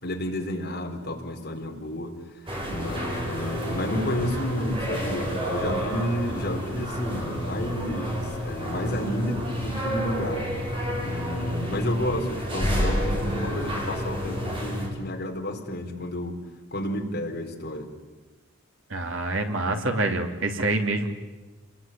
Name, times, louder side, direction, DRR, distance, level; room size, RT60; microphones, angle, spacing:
voice 1, 0.0-2.4 2.7-10.5 11.0-16.4 16.7-17.9, left 1 dB, 55° left, 1 dB, 4.5 m, -31 dB
sound 1, 2.5-14.9, equal, 25° right, 6.5 m, -29 dB
voice 2, 18.9-21.1, right 2 dB, 80° right, 4 dB, 3.0 m, -26 dB
30.0 x 21.5 x 8.8 m, 1.2 s
head